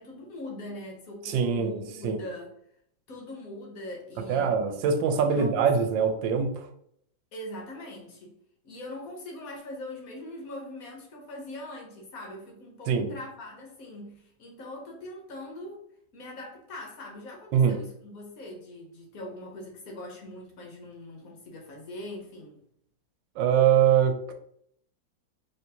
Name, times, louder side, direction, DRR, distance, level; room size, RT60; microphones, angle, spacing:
voice 1, 0.0-2.5 3.1-5.0 5.3-5.7 7.3-8.4 8.6-15.8 16.1-22.6, left 1 dB, 60° left, 0 dB, 1.1 m, -42 dB
voice 2, 1.3-2.2 4.3-6.7 12.9-13.1 17.5-17.8 23.4-24.3, right 7 dB, 90° right, 6 dB, 1.4 m, -23 dB
4.4 x 3.2 x 2.7 m, 0.71 s
omnidirectional pair, 2.0 m